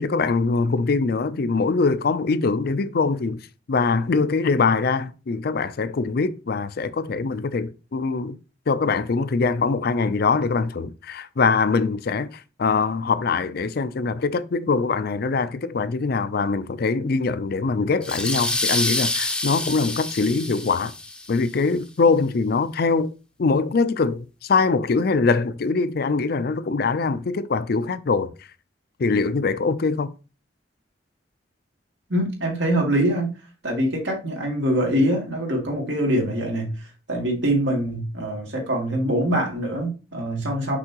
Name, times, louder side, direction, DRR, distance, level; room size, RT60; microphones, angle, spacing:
voice 1, 0.0-8.4 8.7-20.9 21.3-23.1 23.4-28.3 29.0-30.1, left 4 dB, 60° left, 0.5 m, -23 dB
sound 1, 18.0-21.5, left 2 dB, 5° left, 0.6 m, -27 dB
voice 2, 32.1-33.3 33.6-40.8, right 1 dB, 85° right, 2.5 m, -24 dB
6.1 x 5.5 x 2.9 m
head